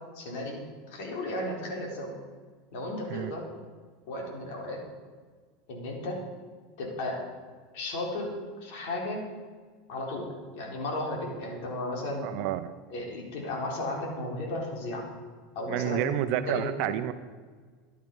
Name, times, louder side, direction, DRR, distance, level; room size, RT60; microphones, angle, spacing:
voice 1, 0.1-2.1 2.7-3.5 4.1-4.8 5.7-6.2 6.8-7.2 7.7-8.3 8.6-9.2 9.9-12.3 12.9-15.1 15.5-16.7, left 1 dB, 65° left, 0 dB, 4.2 m, -34 dB
voice 2, 12.2-12.7 15.7-17.1, right 12 dB, 60° right, 11 dB, 0.8 m, -29 dB
14.0 x 11.0 x 5.5 m, 1.5 s
supercardioid pair, 130°, 0 cm